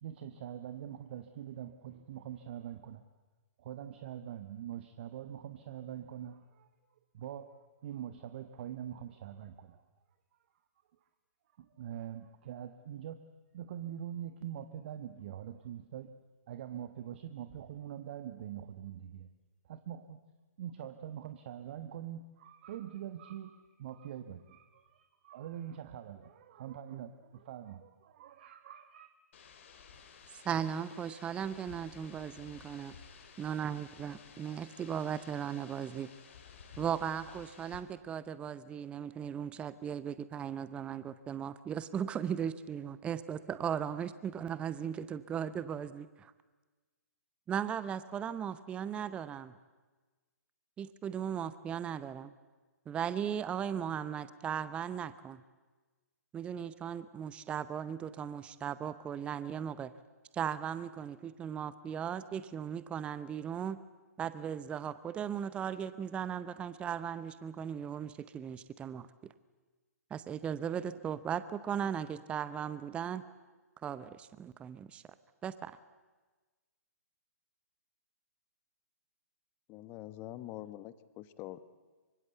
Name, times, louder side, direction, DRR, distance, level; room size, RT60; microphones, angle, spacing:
voice 1, 0.0-3.0 3.6-6.7 7.1-9.8 11.6-13.3 13.5-16.1 16.5-19.3 19.7-20.2 20.6-29.1, right 10 dB, 40° right, 10 dB, 1.3 m, -44 dB
sound 1, 29.3-37.8, left 6 dB, 45° left, 3.6 m, -54 dB
voice 2, 30.4-32.9 33.4-36.1 36.8-46.3 47.5-49.5 50.8-52.3 52.9-55.4 56.3-59.9 60.3-63.8 64.2-69.1 70.1-73.2 73.8-75.0 75.4-75.7, right 8 dB, 10° right, 15 dB, 0.7 m, -37 dB
voice 3, 79.7-81.6, left 14 dB, 25° left, 15 dB, 1.2 m, -45 dB
26.0 x 24.5 x 8.1 m, 1.3 s
figure-of-eight pair, 125°, 9 cm